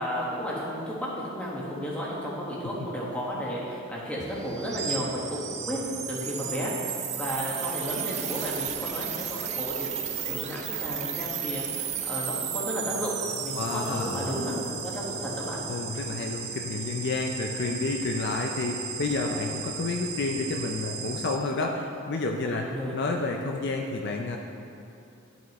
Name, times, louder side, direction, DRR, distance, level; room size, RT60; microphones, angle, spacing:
voice 1, 0.0-5.8 6.1-15.6 22.4-22.9, equal, 5° left, -6 dB, 1.3 m, -33 dB
sound 1, 4.2-21.4, right 7 dB, 30° right, 0.5 m, -34 dB
voice 2, 13.5-14.3 15.7-22.7 22.9-24.4, left 3 dB, 50° left, 1 dB, 0.4 m, -30 dB
11.0 x 6.1 x 3.1 m, 2.7 s
head